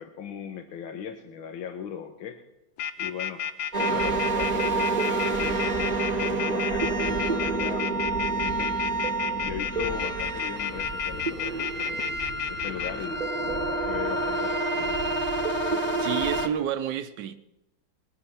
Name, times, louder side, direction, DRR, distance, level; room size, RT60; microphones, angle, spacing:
voice 1, 0.0-2.4 3.0-3.4 3.8-8.0 8.3-9.0 9.4-12.1 12.5-15.0, left 8 dB, 90° left, 1.7 m, -38 dB
sound 1, 2.8-12.9, left 8 dB, 70° left, 1.3 m, -31 dB
sound 2, 3.7-16.5, right 3 dB, 30° right, 0.9 m, -28 dB
voice 2, 16.0-17.4, right 10 dB, 70° right, 1.1 m, -29 dB
20.5 x 8.7 x 5.7 m
omnidirectional pair, 2.1 m